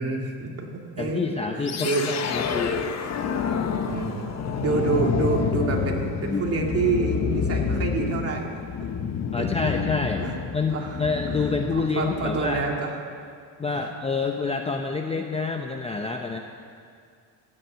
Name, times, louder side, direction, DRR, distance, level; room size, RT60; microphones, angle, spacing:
voice 1, 0.0-1.3 1.5-2.1 3.9-4.3 4.6-8.6 9.4-9.7 10.2-10.3 10.7-11.0 11.3-12.9 13.7-13.9, right 4 dB, 35° right, 1 dB, 2.3 m, -28 dB
voice 2, 1.0-2.8 4.7-4.8 6.2-6.6 9.3-10.2 10.5-12.6 13.6-16.4, left 4 dB, 15° left, 4 dB, 0.6 m, -27 dB
sound 1, 1.6-12.8, left 6 dB, 35° left, 1.1 m, -28 dB
15.5 x 9.7 x 8.8 m, 2.3 s
cardioid pair, 140°, 44 cm